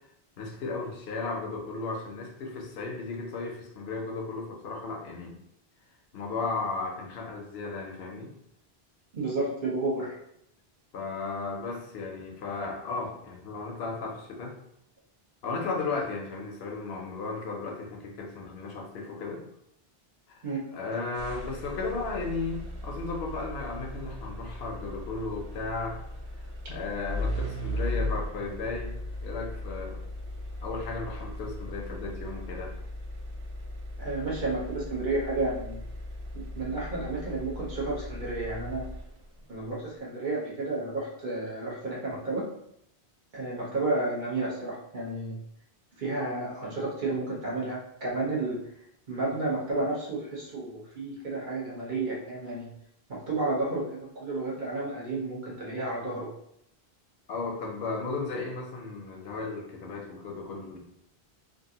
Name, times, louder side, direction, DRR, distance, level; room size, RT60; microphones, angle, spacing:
voice 1, 0.4-5.3 6.1-8.3 10.9-14.6 15.4-19.4 20.3-20.4 20.7-26.0 26.7-28.9 29.2-30.0 30.6-32.7 57.3-60.8, left 3 dB, 70° left, 1 dB, 0.9 m, -35 dB
voice 2, 9.1-10.2 20.4-20.6 34.0-35.8 36.5-38.8 39.5-42.4 43.3-45.3 46.0-48.6 49.1-52.7 53.1-56.3, right 2 dB, 50° right, -5 dB, 1.2 m, -31 dB
sound 1, 21.1-39.4, left 1 dB, 85° right, 1.0 m, -37 dB
3.0 x 2.4 x 2.7 m, 0.75 s
omnidirectional pair, 1.1 m